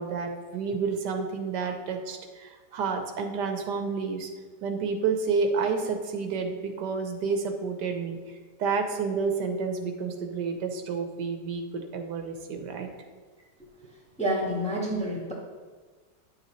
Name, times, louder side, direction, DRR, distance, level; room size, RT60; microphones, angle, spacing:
voice 1, 0.0-4.3 4.6-12.9, right 5 dB, 75° right, 5 dB, 1.3 m, -30 dB
voice 2, 14.2-15.3, equal, 5° left, -3 dB, 1.3 m, -28 dB
10.0 x 6.8 x 3.1 m, 1.4 s
omnidirectional pair, 1.9 m